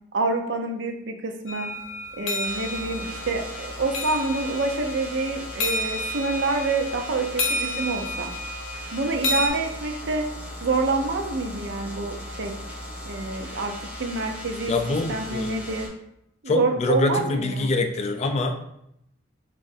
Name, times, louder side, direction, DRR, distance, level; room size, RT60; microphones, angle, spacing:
voice 1, 0.1-1.7 2.2-8.3 8.9-10.3 10.6-12.5 13.0-14.7 15.1-15.9 16.4-17.7, right 3 dB, 65° right, 4 dB, 0.5 m, -27 dB
sound 1, 1.5-9.5, left 1 dB, 90° left, 0.6 m, -31 dB
sound 2, 2.4-15.9, left 1 dB, 10° right, 0.8 m, -38 dB
voice 2, 14.7-15.6 16.5-18.7, left 2 dB, 35° left, 5 dB, 0.3 m, -25 dB
3.6 x 2.4 x 4.0 m, 0.78 s
head